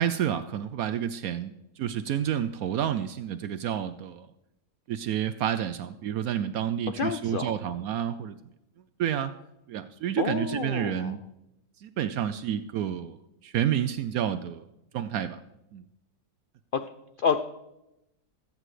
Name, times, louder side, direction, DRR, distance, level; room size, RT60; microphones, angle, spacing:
voice 1, 0.0-4.3 4.9-8.4 9.0-9.3 9.7-11.2 11.8-13.2 13.4-14.6 14.9-15.4 15.7-15.8, right 10 dB, 75° right, 11 dB, 1.0 m, -29 dB
voice 2, 7.0-7.5 10.2-11.1 17.2-17.4, left 6 dB, 90° left, 9 dB, 0.4 m, -28 dB
21.5 x 8.9 x 3.2 m, 0.90 s
omnidirectional pair, 1.6 m